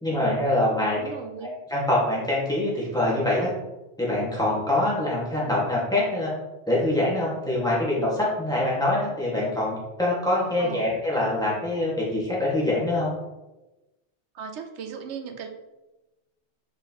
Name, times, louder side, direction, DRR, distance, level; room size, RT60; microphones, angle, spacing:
voice 1, 0.0-1.0 1.7-3.5 4.0-6.3 6.7-13.1, left 1 dB, 5° left, -7 dB, 1.9 m, -24 dB
voice 2, 0.9-1.6 10.6-11.0 14.3-15.5, right 6 dB, 75° right, 5 dB, 1.0 m, -37 dB
6.3 x 4.8 x 3.1 m, 1.1 s
omnidirectional pair, 1.2 m